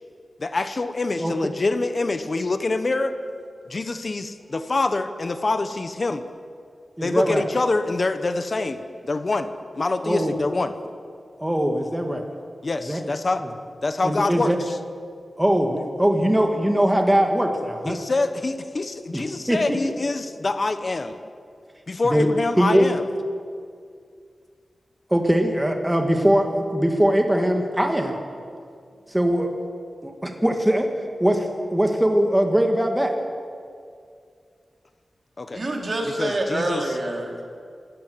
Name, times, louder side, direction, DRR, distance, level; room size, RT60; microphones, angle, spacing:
voice 1, 0.4-3.1 3.7-6.2 7.0-9.5 9.8-10.7 12.6-13.4 13.8-14.8 17.9-21.2 21.9-23.0 35.4-35.6 36.2-36.8, left 3 dB, 40° left, 9 dB, 1.1 m, -25 dB
voice 2, 7.0-7.4 10.0-10.3 11.4-12.2 12.9-13.0 14.0-14.6 15.4-18.0 19.1-19.2 19.5-19.8 22.1-22.3 22.6-22.9 25.1-28.2 29.1-29.5 30.0-30.9 31.2-31.5 31.7-33.1, equal, 10° right, 3 dB, 1.9 m, -21 dB
voice 3, 35.5-37.4, right 1 dB, 45° right, 1 dB, 3.7 m, -26 dB
25.5 x 14.0 x 9.5 m, 2.2 s
wide cardioid pair, 125°, 0 cm